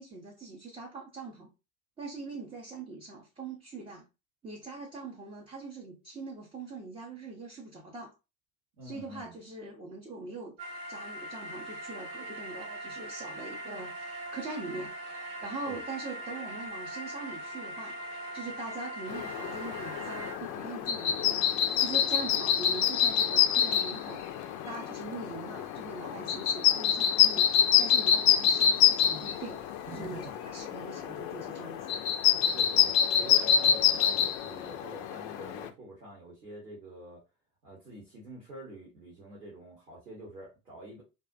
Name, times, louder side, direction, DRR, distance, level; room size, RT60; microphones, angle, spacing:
voice 1, 0.0-1.5 2.0-4.1 4.4-8.1 8.8-10.6 10.9-15.0 15.4-29.6 29.9-32.0 33.6-33.7, right 3 dB, 10° right, 0.5 m, -42 dB
voice 2, 8.8-9.3 15.6-15.8 29.9-30.3 32.5-37.2 37.6-41.0, right 1 dB, 85° right, 1.0 m, -46 dB
sound 1, 10.6-20.3, equal, 70° right, 0.8 m, -41 dB
sound 2, 19.1-35.7, left 9 dB, 45° left, 0.4 m, -27 dB
2.4 x 2.0 x 2.5 m
figure-of-eight pair, 70°, 47 cm